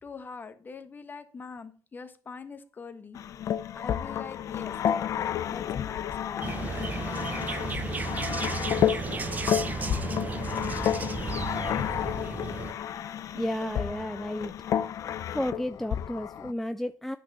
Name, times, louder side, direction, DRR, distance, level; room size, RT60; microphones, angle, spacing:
voice 1, 0.0-3.2 3.7-6.5 13.0-13.3, left 5 dB, 30° left, 1.3 m, -44 dB
sound 1, 3.2-16.5, left 10 dB, 55° left, 0.6 m, -31 dB
sound 2, 6.4-12.7, right 4 dB, 25° right, 0.8 m, -33 dB
voice 2, 13.3-14.5 15.3-17.2, left 1 dB, 5° left, 0.4 m, -32 dB
9.9 x 6.1 x 6.8 m
cardioid pair, 125°, 7 cm